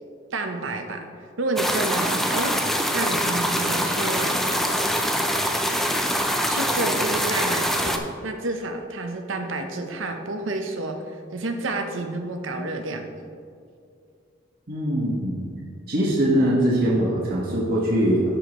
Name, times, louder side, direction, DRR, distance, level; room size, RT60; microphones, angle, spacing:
voice 1, 0.3-1.1 1.4-2.6 2.9-4.9 6.5-13.1, right 2 dB, 70° right, 5 dB, 0.8 m, -29 dB
sound 1, 1.6-8.0, equal, ahead, 0.4 m, -24 dB
voice 2, 14.7-15.4 15.9-18.2, equal, 50° right, -7 dB, 1.4 m, -22 dB
12.5 x 5.0 x 3.1 m, 2.3 s
head